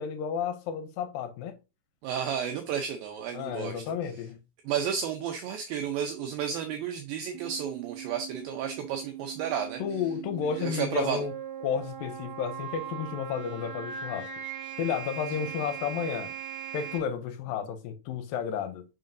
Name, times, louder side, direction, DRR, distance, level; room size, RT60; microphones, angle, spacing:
voice 1, 0.0-1.5 3.3-4.4 9.8-11.3 11.6-14.3 14.8-16.3 16.7-18.8, left 7 dB, 80° left, 2.2 m, -32 dB
voice 2, 2.0-3.8 4.7-9.8 10.4-11.2, right 8 dB, 75° right, 2.4 m, -32 dB
sound 1, 7.3-17.0, right 9 dB, 55° right, 1.6 m, -40 dB
7.5 x 5.3 x 2.6 m
omnidirectional pair, 4.4 m